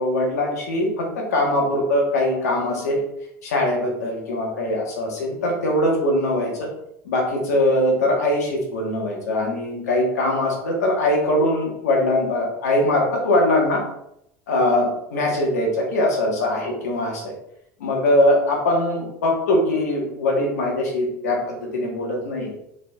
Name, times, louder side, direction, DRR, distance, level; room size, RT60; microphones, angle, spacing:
voice 1, 0.0-3.0 3.4-6.7 7.0-13.8 14.5-17.3 17.8-22.6, left 1 dB, 85° left, 0 dB, 1.3 m, -22 dB
4.4 x 3.9 x 2.4 m, 0.76 s
hypercardioid pair, 85°, 8 cm